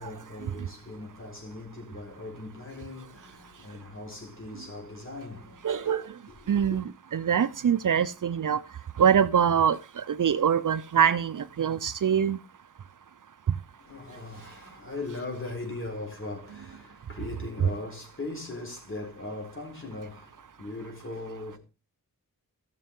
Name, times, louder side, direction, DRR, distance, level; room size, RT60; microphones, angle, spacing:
voice 1, 0.0-5.9 6.3-6.8 13.8-21.6, left 2 dB, 35° left, 4.1 m, -39 dB
voice 2, 5.6-6.0 6.5-6.8 7.1-8.6 9.0-9.8 10.1-12.4, right 8 dB, 60° right, 0.6 m, -23 dB
15.0 x 6.6 x 3.7 m
wide cardioid pair, 80°, 36 cm